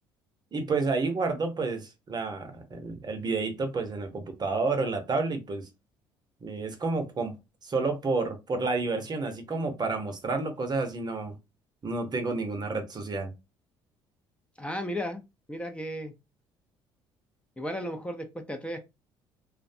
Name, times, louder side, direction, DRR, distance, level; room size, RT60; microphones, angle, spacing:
voice 1, 0.5-5.7 6.4-7.3 7.6-11.4 11.8-13.3, right 3 dB, 35° right, 0.7 m, -30 dB
voice 2, 14.6-15.2 15.5-16.1 17.6-18.8, equal, 10° left, 0.5 m, -34 dB
2.5 x 2.1 x 2.5 m
hypercardioid pair, 60°, 12 cm